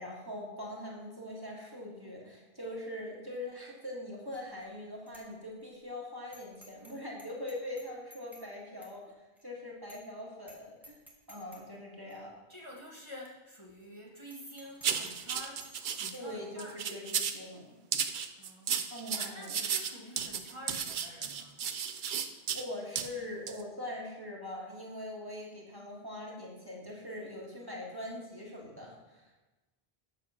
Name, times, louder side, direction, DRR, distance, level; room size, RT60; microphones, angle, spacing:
voice 1, 0.0-11.0 11.3-12.3 16.1-17.7 18.9-19.6 22.5-29.4, left 1 dB, 20° right, -3 dB, 1.8 m, -42 dB
Bicycle bell, 4.3-4.7 5.1-5.2 5.6-5.7 6.3-6.9 7.2-8.5 8.8-8.9 9.4-9.5 9.9-10.2 10.4-10.6 10.8-11.6 12.1-12.2 13.0-13.1 13.3-13.4 13.7-13.9 14.2-16.2, equal, ahead, 1.5 m, -55 dB
voice 2, 12.5-15.6 16.0-16.7 18.4-21.6, equal, 30° left, -4 dB, 1.4 m, -48 dB
sound 1, 14.8-16.1 16.6-17.4 17.9-22.6 23.0-23.1 23.5-23.6, right 7 dB, 60° right, 0.7 m, -34 dB
8.2 x 5.9 x 6.3 m, 1.1 s
omnidirectional pair, 1.0 m